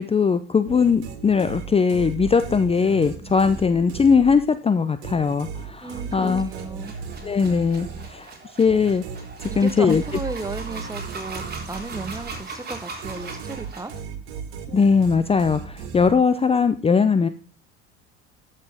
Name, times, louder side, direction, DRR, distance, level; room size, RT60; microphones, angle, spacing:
voice 1, 0.0-6.5 7.2-9.0 9.4-10.0 14.7-17.3, left 5 dB, 15° left, 11 dB, 0.6 m, -20 dB
sound 1, 0.6-4.6 5.0-12.6 13.0-16.5, right 6 dB, 75° right, 2.1 m, -36 dB
voice 2, 5.8-7.0 9.5-13.9, right 3 dB, 10° right, 13 dB, 1.0 m, -34 dB
sound 2, 6.1-14.0, right 3 dB, 30° right, 3.7 m, -39 dB
14.0 x 6.6 x 3.6 m, 0.38 s
hypercardioid pair, 75°, 33 cm